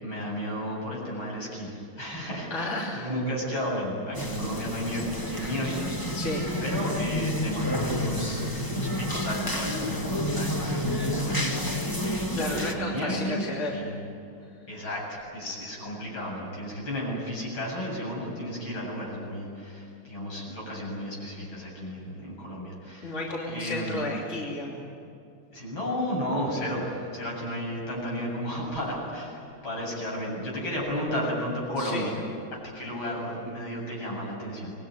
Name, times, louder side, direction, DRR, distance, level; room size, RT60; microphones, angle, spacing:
voice 1, 0.0-5.8 6.6-14.0 14.7-23.2 23.5-24.0 25.5-32.2 32.5-34.7, equal, 70° left, -3 dB, 8.8 m, -33 dB
voice 2, 2.5-3.0 5.4-5.6 6.1-6.5 12.3-13.8 23.0-24.8 31.8-32.1, left 2 dB, 35° left, -3 dB, 3.2 m, -32 dB
sound 1, 4.1-12.7, left 1 dB, 10° left, 1.8 m, -29 dB
26.0 x 21.0 x 9.7 m, 2.6 s
omnidirectional pair, 2.3 m